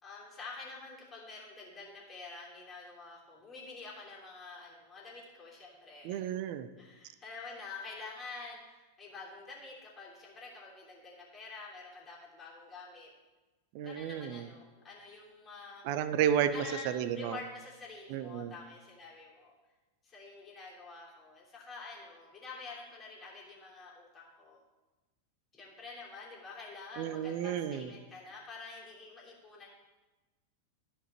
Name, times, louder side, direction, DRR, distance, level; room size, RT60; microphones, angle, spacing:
voice 1, 0.0-6.2 6.8-13.1 13.8-15.8 16.5-19.5 20.0-24.6 25.5-29.7, left 3 dB, 25° left, -4 dB, 3.1 m, -48 dB
voice 2, 6.0-6.7 13.7-14.5 15.8-17.4 18.1-18.5 27.0-27.9, right 9 dB, 45° right, 12 dB, 0.6 m, -32 dB
13.5 x 5.3 x 4.4 m, 1.2 s
figure-of-eight pair, 90°, 0 cm